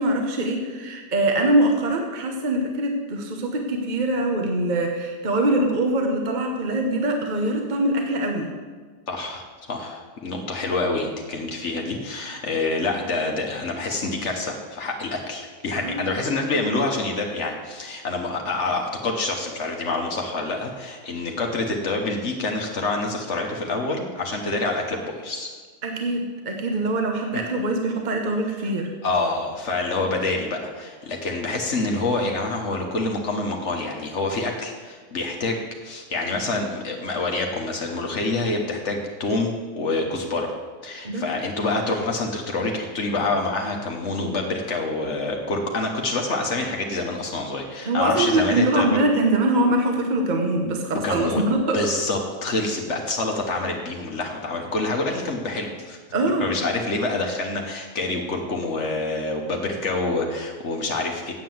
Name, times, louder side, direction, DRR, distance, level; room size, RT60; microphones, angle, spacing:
voice 1, 0.0-8.5 15.8-16.2 25.8-28.9 41.0-41.2 47.8-51.8 56.1-56.5, right 1 dB, 40° right, 3 dB, 1.1 m, -23 dB
voice 2, 9.1-25.5 27.3-27.4 29.0-40.5 40.8-49.0 51.0-51.4 51.7-56.0 56.4-61.3, left 2 dB, 65° left, 1 dB, 1.4 m, -27 dB
8.5 x 7.5 x 7.6 m, 1.5 s
omnidirectional pair, 1.4 m